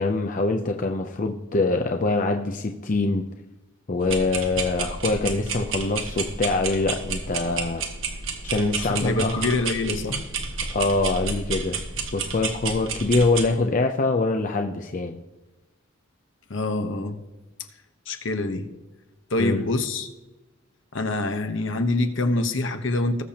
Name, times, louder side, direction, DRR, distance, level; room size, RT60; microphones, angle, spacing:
voice 1, 0.0-3.2 3.9-7.9 8.4-9.6 10.7-11.8 12.1-15.2 19.4-19.7, left 3 dB, 40° left, 4 dB, 0.6 m, -24 dB
sound 1, 4.0-13.5, right 4 dB, 70° right, 1.3 m, -31 dB
voice 2, 8.8-10.2 16.5-17.2 18.1-18.7 19.3-20.1 20.9-23.2, left 2 dB, 60° left, 7 dB, 1.0 m, -25 dB
19.5 x 6.7 x 2.9 m, 1.1 s
head